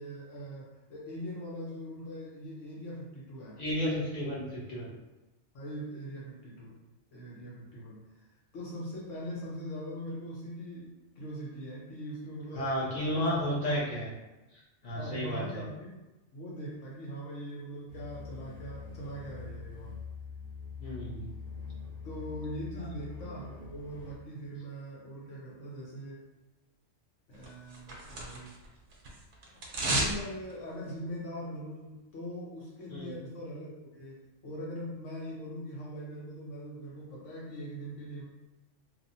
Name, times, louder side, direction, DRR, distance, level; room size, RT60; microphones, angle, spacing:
voice 1, 0.0-3.6 5.5-6.8 7.1-14.0 14.9-16.0 16.3-20.0 22.0-26.3 27.3-28.5 29.7-38.2, equal, 85° left, -5 dB, 1.2 m, -41 dB
voice 2, 3.6-4.9 12.5-14.1 14.5-15.6 20.8-21.3 22.8-22.9 32.9-33.1, equal, 35° left, -7 dB, 1.0 m, -33 dB
sound 1, 17.9-24.2, left 4 dB, 65° left, 1.3 m, -44 dB
sound 2, 27.4-28.7 28.9-30.2 30.5-30.6, right 1 dB, 60° right, 0.9 m, -32 dB
3.0 x 2.3 x 2.6 m, 1.0 s
omnidirectional pair, 1.3 m